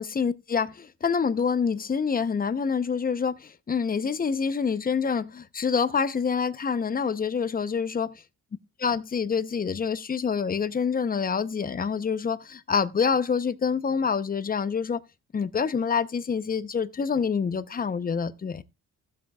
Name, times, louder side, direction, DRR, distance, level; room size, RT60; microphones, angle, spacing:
voice 1, 0.0-8.1 8.8-15.0 15.3-18.6, left 6 dB, 30° left, 0.7 m, -26 dB
15.0 x 7.8 x 2.3 m
cardioid pair, 90°, 30 cm